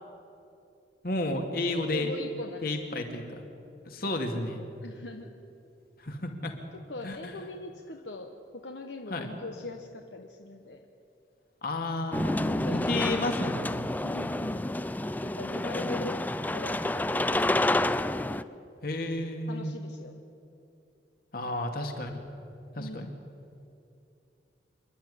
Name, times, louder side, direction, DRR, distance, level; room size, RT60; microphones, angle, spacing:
voice 1, 1.0-2.1 2.6-3.4 3.8-4.6 6.0-6.5 7.0-7.3 9.1-9.3 11.6-13.9 18.8-19.7 21.3-22.2 22.8-23.1, left 2 dB, 55° left, 4 dB, 2.4 m, -32 dB
voice 2, 1.9-2.8 4.8-5.3 6.7-10.8 12.4-12.9 14.0-14.6 15.2-17.9 19.5-20.2 22.8-23.2, left 2 dB, 75° left, 4 dB, 1.2 m, -41 dB
sound 1, 12.1-18.4, left 1 dB, 10° left, 0.4 m, -29 dB
27.0 x 11.5 x 10.0 m, 2.7 s
head